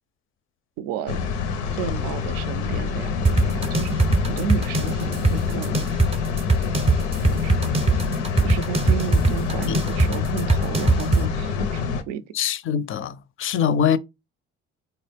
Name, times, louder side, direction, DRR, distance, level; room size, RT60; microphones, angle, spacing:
voice 1, 0.8-1.3 1.7-5.9 7.3-7.8 8.4-12.2, right 8 dB, 75° right, 0.5 m, -33 dB
sound 1, 1.1-12.0, left 5 dB, 90° left, 0.6 m, -26 dB
sound 2, 3.2-11.2, right 3 dB, 20° right, 0.5 m, -21 dB
voice 2, 12.3-14.0, left 8 dB, 40° left, 0.4 m, -23 dB
3.8 x 2.2 x 3.3 m
supercardioid pair, 65°, 33 cm